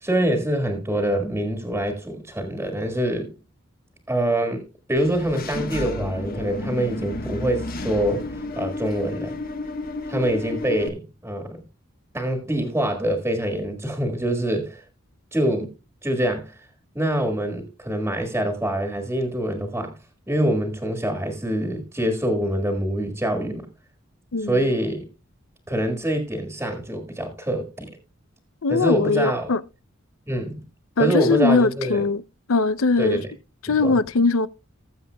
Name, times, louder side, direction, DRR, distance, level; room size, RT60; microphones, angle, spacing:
voice 1, 0.0-3.3 4.1-8.3 8.5-9.3 10.1-11.6 12.1-14.8 15.3-15.7 16.0-16.6 16.9-20.0 20.3-23.7 24.5-25.1 25.7-27.9 28.7-29.5 30.3-30.6 31.0-32.0 33.0-33.2 33.8-34.0, right 1 dB, 10° right, 1.6 m, -25 dB
Engine / Mechanisms, 5.0-10.9, left 2 dB, 45° left, 1.2 m, -32 dB
voice 2, 24.3-24.6 28.6-29.6 31.0-32.2 32.5-33.2 33.6-34.5, left 3 dB, 90° left, 0.6 m, -20 dB
19.5 x 7.3 x 2.2 m
head